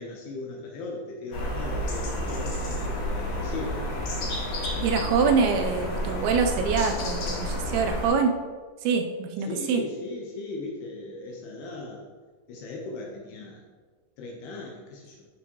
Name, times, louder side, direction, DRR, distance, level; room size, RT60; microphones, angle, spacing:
voice 1, 0.0-3.8 9.5-12.1 12.5-13.6 14.2-15.3, left 3 dB, 75° left, -1 dB, 2.6 m, -38 dB
sound 1, 1.3-8.1, left 1 dB, 50° left, 2.6 m, -30 dB
voice 2, 4.8-8.4 8.8-9.8, right 5 dB, 80° right, 4 dB, 2.8 m, -25 dB
11.0 x 7.0 x 3.0 m, 1.5 s
omnidirectional pair, 5.4 m